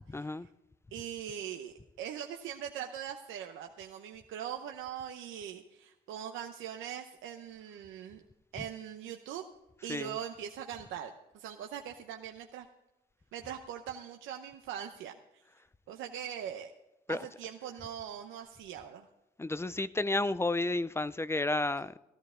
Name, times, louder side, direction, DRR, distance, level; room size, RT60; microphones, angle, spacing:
voice 1, 0.1-0.5 8.6-8.7 9.9-10.2 17.1-17.3 19.4-22.0, left 2 dB, 15° left, 0.4 m, -32 dB
voice 2, 0.9-8.2 8.5-9.4 9.8-12.7 13.3-15.1 15.9-16.7 17.1-19.1, right 9 dB, 90° right, 0.8 m, -41 dB
15.5 x 13.5 x 3.7 m
cardioid pair, 90°, 20 cm